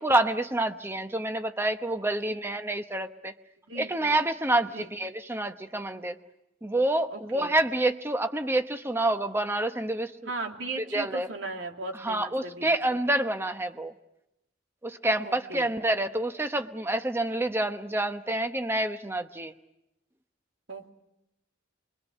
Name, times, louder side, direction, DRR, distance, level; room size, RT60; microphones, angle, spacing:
voice 1, 0.0-3.3 3.8-6.1 6.6-10.3 10.9-11.3 12.0-13.9 14.8-19.5, right 1 dB, 15° right, 8 dB, 1.0 m, -28 dB
voice 2, 3.7-4.2 4.6-4.9 7.1-7.5 10.3-12.7 15.2-15.7 20.7-20.9, right 3 dB, 80° right, 2 dB, 2.8 m, -37 dB
25.0 x 23.0 x 8.3 m, 0.88 s
head